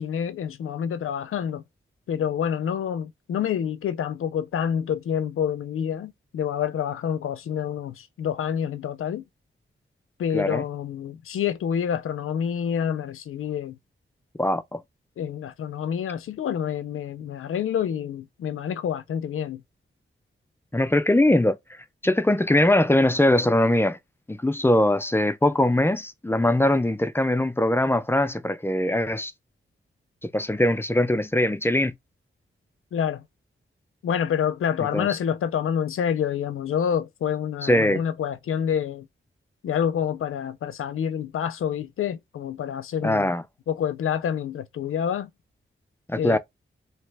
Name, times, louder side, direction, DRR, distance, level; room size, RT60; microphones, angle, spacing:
voice 1, 0.0-1.6 2.1-9.2 10.2-13.8 15.2-19.6 32.9-33.2 34.0-39.1 39.6-43.3 43.7-45.3 46.2-46.4, left 8 dB, 85° left, 0.4 m, -27 dB
voice 2, 10.3-10.6 14.4-14.8 20.7-21.6 22.0-24.0 24.3-29.3 30.2-31.9 34.9-35.1 37.6-38.0 43.0-43.4 46.1-46.4, left 1 dB, 10° left, 0.3 m, -21 dB
2.8 x 2.1 x 3.2 m
wide cardioid pair, 105°, 21 cm